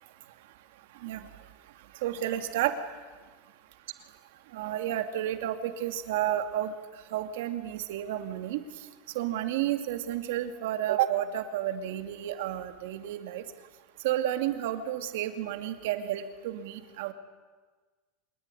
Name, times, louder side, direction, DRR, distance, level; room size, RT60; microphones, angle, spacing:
voice 1, 1.0-1.3 1.9-2.8 4.5-8.6 9.1-13.4 14.0-17.1, right 12 dB, 65° right, 8 dB, 2.4 m, -31 dB
26.0 x 20.5 x 10.0 m, 1.4 s
supercardioid pair, 180°, 0 cm